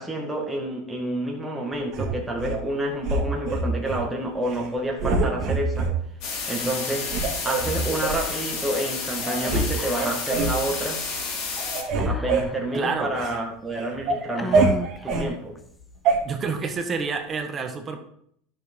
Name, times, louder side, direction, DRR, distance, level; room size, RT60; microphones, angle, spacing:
voice 1, 0.0-5.9 6.5-7.1 7.4-11.0 12.1-14.8 15.0-15.6, right 1 dB, 10° right, -1 dB, 1.9 m, -29 dB
sound 1, 1.9-2.6 3.0-4.0 4.4-4.7 5.0-5.9 6.5-6.6 7.1-8.2 8.8-8.9 9.2-9.7 10.0-10.6 11.0-11.3 11.6-13.4 13.8-15.3 16.1-16.2, right 3 dB, 50° right, 2.3 m, -25 dB
sound 2, 6.2-11.8, left 4 dB, 55° left, 2.9 m, -31 dB
Whispering, 9.7-10.4 10.7-10.8 12.0-12.8 13.5-13.6 14.4-15.6, left 3 dB, 15° left, 0.7 m, -33 dB
voice 2, 12.7-13.1 16.2-18.0, right 5 dB, 30° right, 6 dB, 1.4 m, -28 dB
11.0 x 6.2 x 3.7 m, 0.67 s
supercardioid pair, 110°, 0 cm